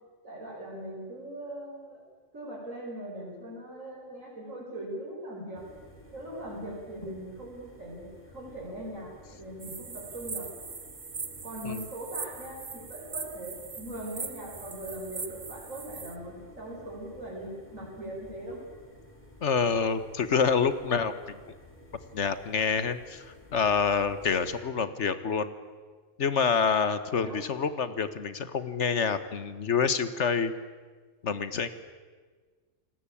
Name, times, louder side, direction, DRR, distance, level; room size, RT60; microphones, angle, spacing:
voice 1, 0.2-2.0 2.3-5.6 6.1-8.1 8.3-10.5 11.4-18.6 27.1-27.4, right 1 dB, 90° right, -3 dB, 5.9 m, -40 dB
sound 1, 5.5-24.6, equal, 10° left, 5.1 m, -53 dB
sound 2, 9.6-16.2, right 5 dB, 35° right, 1.2 m, -40 dB
voice 2, 19.4-21.4 22.1-23.2 23.5-25.5 26.2-30.5 31.2-31.7, left 6 dB, 65° left, 13 dB, 1.6 m, -27 dB
29.0 x 19.0 x 8.6 m, 1.5 s
omnidirectional pair, 1.3 m